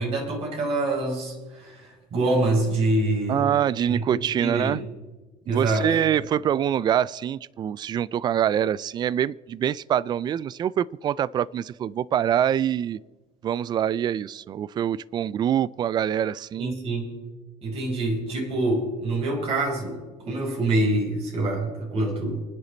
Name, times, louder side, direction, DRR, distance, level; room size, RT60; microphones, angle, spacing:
voice 1, 0.0-3.5 3.9-4.8 5.5-5.9 16.6-17.1 17.6-20.0 20.2-22.4, right 2 dB, 50° right, 0 dB, 5.5 m, -26 dB
voice 2, 3.3-4.8 5.5-13.0 13.4-16.7, right 10 dB, 35° right, 21 dB, 0.4 m, -25 dB
29.0 x 10.0 x 4.0 m, 1.2 s
cardioid pair, 130°, 13 cm